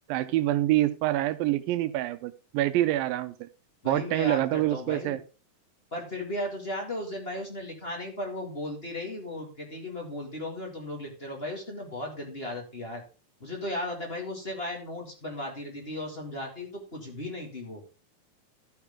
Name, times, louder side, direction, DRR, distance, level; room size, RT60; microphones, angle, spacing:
voice 1, 0.1-3.5 3.9-5.2, right 15 dB, 85° right, 2.4 m, -26 dB
voice 2, 3.8-5.2 5.9-13.0 13.4-17.8, left 1 dB, 20° left, 1.6 m, -36 dB
12.5 x 8.2 x 3.6 m
omnidirectional pair, 4.1 m